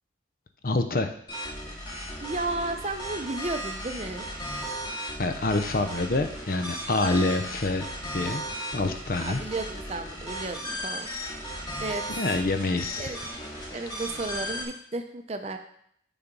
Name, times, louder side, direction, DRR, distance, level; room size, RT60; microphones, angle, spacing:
voice 1, 0.6-1.1 5.2-7.9 8.1-8.4 8.7-9.4 12.2-13.2, left 2 dB, 50° left, 7 dB, 0.6 m, -26 dB
sound 1, 1.3-14.7, equal, 25° left, 1.9 m, -36 dB
voice 2, 2.2-4.3 9.2-11.1 11.8-12.1 13.0-13.2 13.7-15.6, right 2 dB, 35° right, 7 dB, 0.6 m, -33 dB
6.8 x 4.0 x 6.0 m, 0.67 s
head